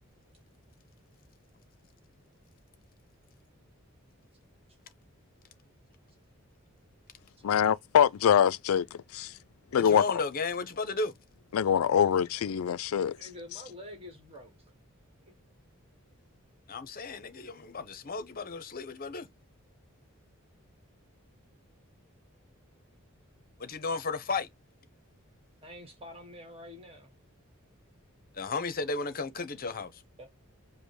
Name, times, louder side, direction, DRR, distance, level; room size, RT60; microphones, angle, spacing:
voice 1, 7.4-9.3 9.7-10.0 11.5-13.2, left 8 dB, 75° left, 0.4 m, -24 dB
voice 2, 9.7-11.1 16.7-19.3 23.6-24.5 28.3-30.0, left 4 dB, 45° left, 0.7 m, -34 dB
voice 3, 13.1-14.6 25.6-27.1 30.2-30.3, left 1 dB, 25° right, 1.2 m, -47 dB
5.1 x 2.1 x 4.6 m
head